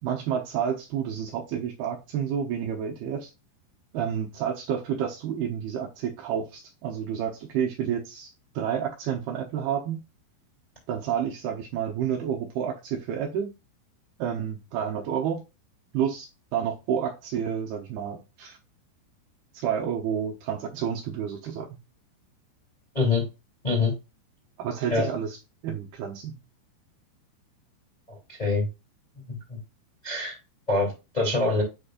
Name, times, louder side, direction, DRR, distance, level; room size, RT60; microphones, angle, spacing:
voice 1, 0.0-3.3 3.9-10.0 10.9-13.5 14.2-15.4 15.9-18.6 19.5-21.8 24.6-25.4 25.6-26.4, right 8 dB, 70° right, 1 dB, 2.6 m, -30 dB
voice 2, 28.3-28.7 29.3-29.6 30.0-30.4 30.7-31.6, left 3 dB, 15° left, -3 dB, 1.6 m, -25 dB
7.8 x 5.1 x 2.5 m, 0.26 s
omnidirectional pair, 5.2 m